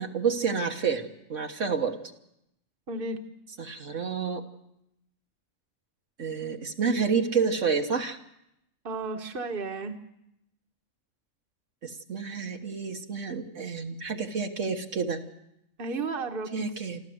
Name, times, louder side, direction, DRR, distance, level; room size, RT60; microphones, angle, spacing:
voice 1, 0.0-2.0 3.6-4.4 6.2-8.2 11.8-15.2 16.5-17.0, right 5 dB, 70° right, 3 dB, 1.7 m, -29 dB
voice 2, 2.9-3.2 8.8-10.0 15.8-16.5, right 3 dB, 45° right, 5 dB, 1.6 m, -33 dB
26.0 x 14.0 x 7.9 m, 0.82 s
omnidirectional pair, 1.3 m